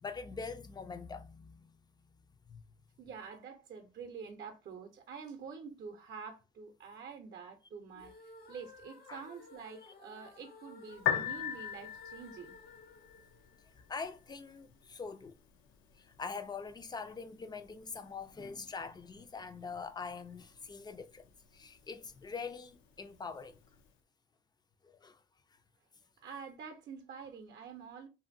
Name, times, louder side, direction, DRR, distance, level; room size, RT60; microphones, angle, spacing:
voice 1, 0.0-2.1 2.5-2.6 9.1-9.3 13.9-15.4 16.0-23.6 24.8-25.2, left 5 dB, 20° left, 0.3 m, -44 dB
voice 2, 3.0-8.1 8.5-12.5 26.2-28.1, right 6 dB, 55° right, 0.6 m, -47 dB
sound 1, 7.9-14.1, left 3 dB, 50° left, 0.7 m, -56 dB
Piano, 10.9-23.9, left 10 dB, 80° left, 0.5 m, -43 dB
2.6 x 2.5 x 2.5 m
cardioid pair, 90°, 20 cm